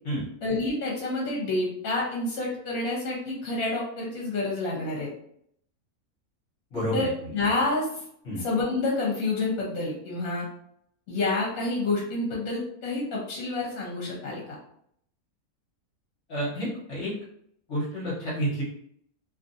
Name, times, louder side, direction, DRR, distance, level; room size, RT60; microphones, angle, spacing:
voice 1, 0.4-5.1 6.9-7.1 7.3-7.9 8.4-10.5 11.1-14.4, left 2 dB, 75° left, -3 dB, 1.2 m, -28 dB
voice 2, 6.7-7.3 8.2-8.4 16.3-17.1 17.7-18.6, equal, 55° left, -7 dB, 1.3 m, -30 dB
2.9 x 2.4 x 2.6 m, 0.68 s
omnidirectional pair, 1.5 m